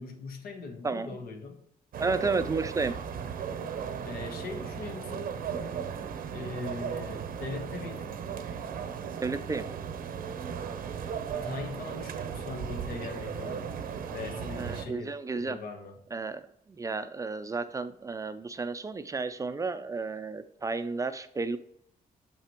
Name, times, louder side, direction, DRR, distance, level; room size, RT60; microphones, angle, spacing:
voice 1, 0.0-1.6 4.1-5.4 6.3-8.2 11.3-13.7 14.1-16.0, left 4 dB, 80° left, 5 dB, 1.1 m, -40 dB
voice 2, 0.8-1.2 2.0-2.9 9.2-9.7 14.6-15.6 16.1-21.6, right 4 dB, 20° right, 10 dB, 0.3 m, -32 dB
sound 1, 1.9-14.8, right 7 dB, 75° right, 0.6 m, -36 dB
6.9 x 5.7 x 3.0 m, 0.73 s
cardioid pair, 135°, 15 cm